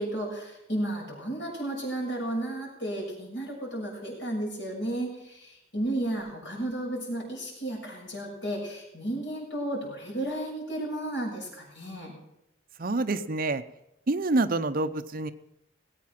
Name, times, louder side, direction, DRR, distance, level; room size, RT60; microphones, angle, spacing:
voice 1, 0.0-12.1, right 1 dB, 75° left, -3 dB, 6.9 m, -33 dB
voice 2, 12.8-13.6 14.1-15.3, right 2 dB, 50° right, 10 dB, 0.7 m, -27 dB
19.0 x 8.5 x 5.9 m, 0.83 s
head